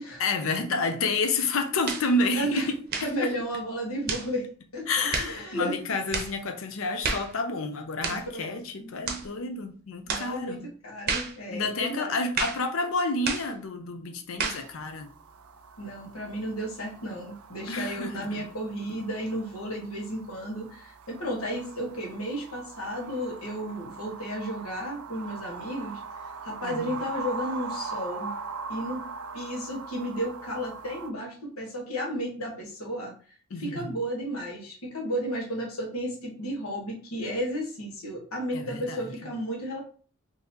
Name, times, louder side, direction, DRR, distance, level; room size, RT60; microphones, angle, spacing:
voice 1, 0.2-3.3 4.9-10.7 11.5-15.1 17.7-18.5 26.6-27.0 33.5-33.9 38.5-39.1, left 3 dB, 70° left, 0.6 m, -30 dB
sound 1, 1.9-2.1 2.9-3.2 4.1-4.3 5.1-5.4 6.1-6.4 7.0-7.3 8.0-8.3 9.1-9.3 10.1-10.3 11.1-11.4 12.4-12.7 13.3-13.5 14.4-14.7, right 4 dB, 45° right, 0.6 m, -30 dB
voice 2, 2.3-2.7 3.0-5.9 8.0-8.9 10.1-12.1 15.8-26.0 26.4-28.3 28.7-29.0 29.3-33.1 33.6-39.8, equal, 90° left, 1.3 m, -33 dB
sound 2, 14.6-31.1, right 4 dB, 85° right, 0.4 m, -41 dB
3.8 x 2.8 x 2.8 m
head